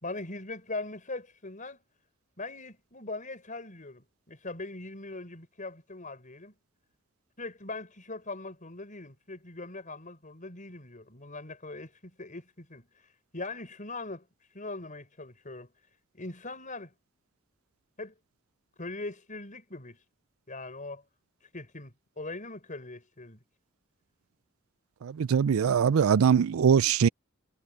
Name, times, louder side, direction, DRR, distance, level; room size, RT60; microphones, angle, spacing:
voice 1, 0.0-1.8 2.4-6.5 7.4-12.9 13.3-14.3 14.5-15.7 16.1-16.9 18.0-18.1 18.8-20.0 20.5-21.0 21.5-23.4, left 2 dB, 40° left, 5.2 m, -41 dB
voice 2, 25.0-27.1, right 7 dB, 90° right, 0.4 m, -22 dB
head